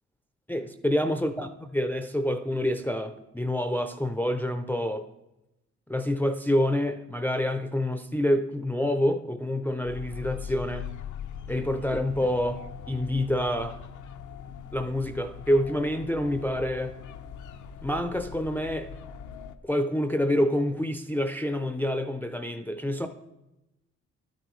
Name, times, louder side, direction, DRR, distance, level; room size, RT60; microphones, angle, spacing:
voice 1, 0.5-1.5 1.7-5.1 5.9-10.9 11.5-13.8 14.7-17.0 17.8-18.9 19.6-23.1, left 1 dB, 5° left, 7 dB, 0.4 m, -27 dB
sound 1, 9.8-19.5, left 7 dB, 85° left, 0.6 m, -41 dB
12.0 x 9.1 x 3.1 m, 0.94 s
cardioid pair, 115°, 29 cm